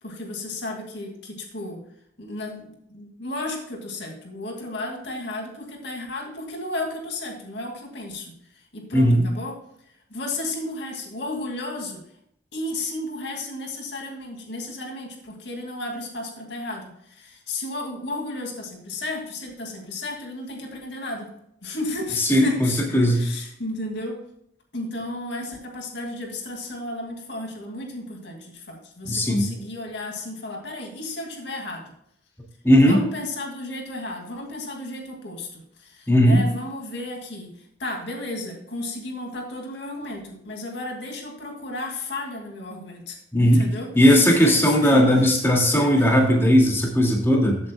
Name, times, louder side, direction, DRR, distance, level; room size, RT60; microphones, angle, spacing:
voice 1, 0.0-1.8 2.2-9.6 10.1-12.0 12.5-21.3 21.6-24.2 24.7-31.9 32.8-45.1 45.8-46.1, left 2 dB, 65° left, 2 dB, 2.4 m, -33 dB
voice 2, 8.9-9.2 22.3-23.2 29.1-29.5 32.6-33.0 36.1-36.4 43.3-43.6 44.0-47.6, equal, 15° left, -1 dB, 2.2 m, -17 dB
14.5 x 8.6 x 2.3 m, 0.73 s
head